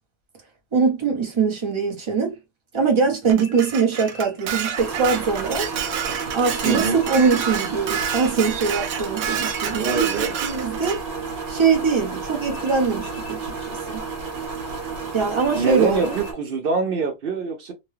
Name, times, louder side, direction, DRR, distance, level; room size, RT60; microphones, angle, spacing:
voice 1, 0.7-2.4 2.7-5.7 6.3-11.0 11.5-14.0 15.1-16.2, right 5 dB, 25° right, 0.7 m, -22 dB
Dishes pots and pans, 3.3-11.0, right 8 dB, 70° right, 1.0 m, -29 dB
sound 1, 3.4-4.4 6.4-7.4 9.4-10.4 12.4-13.4 15.4-16.4, left 5 dB, 75° left, 1.4 m, -45 dB
sound 2, 4.8-16.3, right 4 dB, 50° right, 1.2 m, -32 dB
voice 2, 6.6-7.0 9.7-10.3 15.6-17.7, right 4 dB, 85° right, 0.5 m, -24 dB
3.8 x 2.2 x 3.2 m
omnidirectional pair, 1.7 m